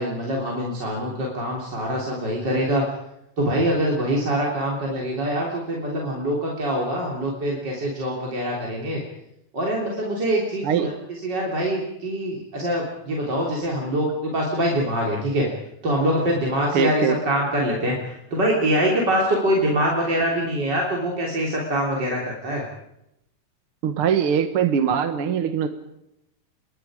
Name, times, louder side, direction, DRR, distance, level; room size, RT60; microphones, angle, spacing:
voice 1, 0.0-2.8 3.4-9.0 9.5-15.5 15.8-22.6, equal, 35° right, -2 dB, 3.9 m, -24 dB
voice 2, 16.7-17.2 23.8-25.7, right 7 dB, 55° right, 8 dB, 1.8 m, -22 dB
28.0 x 22.5 x 5.1 m, 0.83 s
omnidirectional pair, 3.5 m